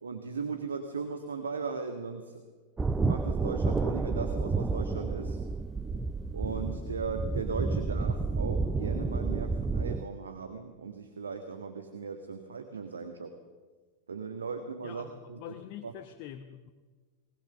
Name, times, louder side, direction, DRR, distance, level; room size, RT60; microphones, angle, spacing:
voice 1, 0.0-2.4 3.0-5.4 6.3-13.3 14.1-15.4 15.8-15.9, right 4 dB, 70° right, 7 dB, 1.6 m, -37 dB
sound 1, 2.8-10.0, right 4 dB, 15° right, 0.6 m, -30 dB
voice 2, 14.8-16.7, left 11 dB, 45° left, 8 dB, 1.1 m, -45 dB
21.0 x 19.5 x 6.8 m, 1.4 s
figure-of-eight pair, 90°, 0 cm